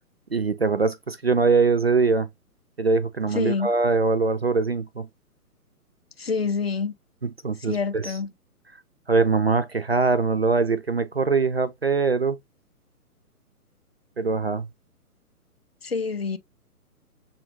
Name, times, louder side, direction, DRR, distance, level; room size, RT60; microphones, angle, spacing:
voice 1, 0.3-2.3 2.8-5.1 7.2-8.1 9.1-12.4 14.2-14.7, right 4 dB, 45° right, 0.4 m, -22 dB
voice 2, 3.3-3.7 6.2-6.9 7.6-8.3 15.8-16.4, left 5 dB, 45° left, 0.6 m, -27 dB
6.9 x 2.4 x 3.0 m
figure-of-eight pair, 135°, 46 cm